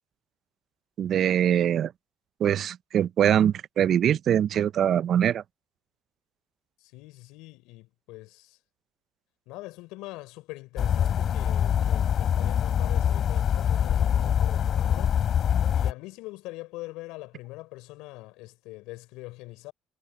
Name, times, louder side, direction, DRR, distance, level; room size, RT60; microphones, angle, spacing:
voice 1, 1.0-1.9 2.4-5.4, right 9 dB, 55° right, 0.6 m, -23 dB
voice 2, 6.8-8.6 9.5-15.2 15.7-19.7, left 21 dB, 80° left, 5.2 m, -43 dB
sound 1, 10.8-15.9, left 9 dB, 50° left, 3.3 m, -24 dB
supercardioid pair, 85°, 0 cm